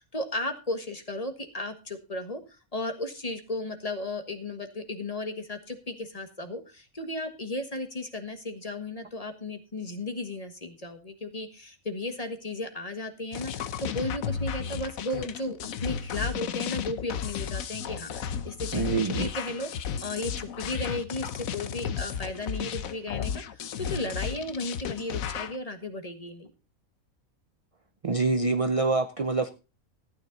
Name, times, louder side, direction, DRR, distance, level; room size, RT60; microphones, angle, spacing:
voice 1, 0.0-2.4 2.7-19.7 20.0-26.5, left 2 dB, 25° left, 7 dB, 1.5 m, -35 dB
sound 1, 13.3-25.6, left 8 dB, 75° left, 1.2 m, -34 dB
voice 2, 18.7-19.3 28.0-29.5, right 3 dB, 40° right, 9 dB, 0.5 m, -26 dB
14.5 x 9.9 x 3.9 m, 0.31 s
omnidirectional pair, 1.5 m